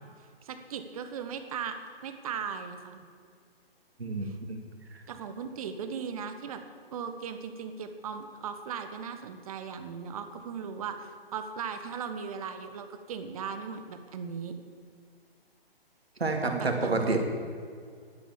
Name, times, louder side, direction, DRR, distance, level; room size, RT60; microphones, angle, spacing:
voice 1, 0.4-3.0 5.1-6.6 6.9-14.5 16.4-17.2, right 6 dB, 35° right, 8 dB, 1.3 m, -38 dB
voice 2, 4.0-4.6 4.9-5.0 16.2-17.2, right 3 dB, 80° right, 3 dB, 2.7 m, -29 dB
11.5 x 10.5 x 7.3 m, 2.1 s
figure-of-eight pair, 140°, 31 cm